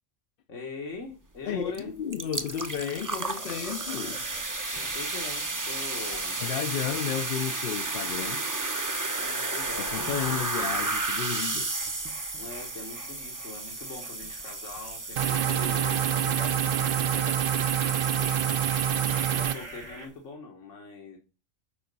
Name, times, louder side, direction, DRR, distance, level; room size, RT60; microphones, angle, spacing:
voice 1, 0.5-1.9 4.7-6.4 9.1-10.9 12.3-18.7 19.3-21.2, left 3 dB, 85° left, 1.6 m, -42 dB
voice 2, 1.4-4.8 6.1-8.4 9.8-11.7, left 9 dB, 60° left, 0.6 m, -33 dB
sound 1, 1.7-1.8 2.1-19.9, right 3 dB, 20° right, 0.6 m, -33 dB
sound 2, 2.9-7.6 8.2-20.1, right 2 dB, 75° right, 1.9 m, -47 dB
sound 3, 15.2-19.5, right 9 dB, 55° right, 0.7 m, -26 dB
7.0 x 5.1 x 5.2 m
omnidirectional pair, 1.2 m